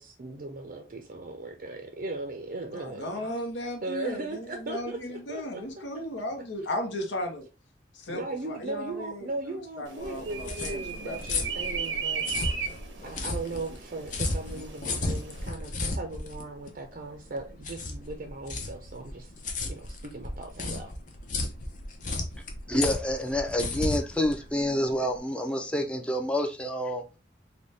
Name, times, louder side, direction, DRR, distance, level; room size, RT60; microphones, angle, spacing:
voice 1, 0.0-3.3 3.8-6.5 8.1-12.3 12.5-12.6 13.0-20.9, right 2 dB, 50° right, 0.5 m, -38 dB
voice 2, 2.7-7.5 7.9-11.5 22.0-22.2, left 1 dB, 80° left, 0.8 m, -36 dB
sound 1, 9.8-15.5, right 6 dB, 85° right, 0.7 m, -36 dB
sound 2, 10.0-25.2, left 2 dB, 45° left, 0.6 m, -34 dB
voice 3, 22.7-27.0, left 1 dB, 5° left, 0.4 m, -28 dB
3.9 x 2.2 x 3.2 m
head